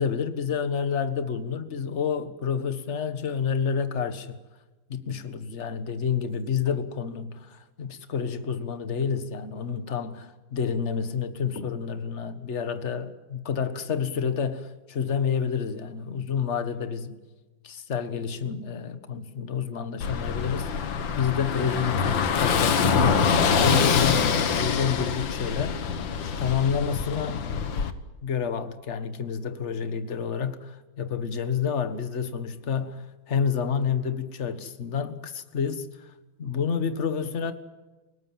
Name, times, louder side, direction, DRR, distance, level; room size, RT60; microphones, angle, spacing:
voice 1, 0.0-4.4 4.9-17.2 17.6-25.9 26.4-27.9 28.2-36.1 36.4-37.5, left 6 dB, 35° left, 1.6 m, -29 dB
Car passing by / Engine, 20.0-27.9, left 6 dB, 65° left, 2.0 m, -25 dB
29.5 x 18.5 x 7.6 m
omnidirectional pair, 2.4 m